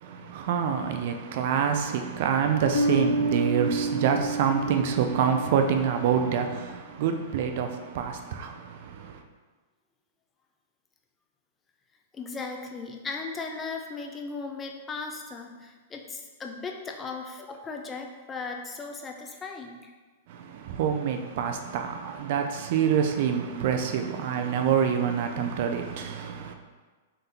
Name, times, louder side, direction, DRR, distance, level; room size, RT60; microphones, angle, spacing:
voice 1, 0.0-9.2 20.3-26.5, right 7 dB, 60° right, 0.4 m, -26 dB
Bass guitar, 2.7-6.2, right 2 dB, 85° left, 0.6 m, -29 dB
voice 2, 12.1-19.9, left 4 dB, 20° left, 0.5 m, -37 dB
3.7 x 2.7 x 3.7 m
hypercardioid pair, 115°, 0 cm